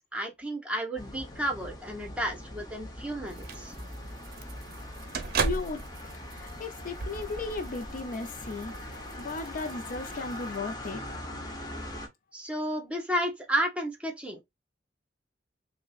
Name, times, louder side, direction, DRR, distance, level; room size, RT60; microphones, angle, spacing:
voice 1, 0.0-3.7 12.3-14.4, right 1 dB, 5° right, 0.9 m, -32 dB
sound 1, 1.0-12.1, left 1 dB, 20° left, 0.8 m, -42 dB
sound 2, 3.3-10.6, right 4 dB, 55° right, 0.6 m, -37 dB
voice 2, 5.4-5.8 6.3-8.7 9.2-11.0, left 3 dB, 50° left, 0.5 m, -35 dB
5.5 x 2.1 x 2.3 m
head